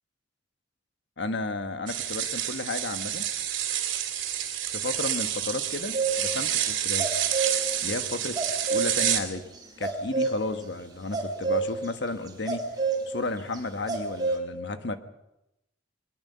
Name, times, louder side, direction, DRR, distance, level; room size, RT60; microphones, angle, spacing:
voice 1, 1.2-3.3 4.7-7.1 7.8-8.4 8.7-9.4 9.8-12.6 13.1-15.0, left 2 dB, 65° left, 8 dB, 1.4 m, -33 dB
sound 1, 1.9-9.2, right 10 dB, 90° right, 3.1 m, -29 dB
sound 2, 5.9-6.2 7.0-8.9 9.8-10.3 11.1-11.8 12.3-13.0 13.5-13.6 13.9-14.4, right 4 dB, 20° right, 4.1 m, -27 dB
22.5 x 20.5 x 5.7 m, 0.89 s
head